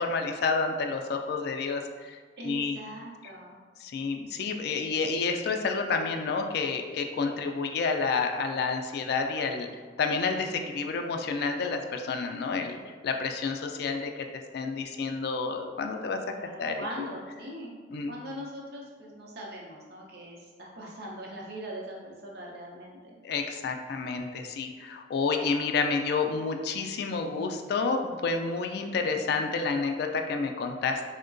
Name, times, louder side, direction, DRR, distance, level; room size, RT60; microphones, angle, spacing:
voice 1, 0.0-2.8 3.8-16.2 16.6-16.8 17.9-18.1 23.2-31.1, left 4 dB, 60° left, 5 dB, 0.3 m, -30 dB
voice 2, 2.4-3.6 16.4-17.7 18.1-23.2, equal, 60° right, -2 dB, 0.7 m, -41 dB
4.5 x 2.1 x 2.5 m, 1.5 s
head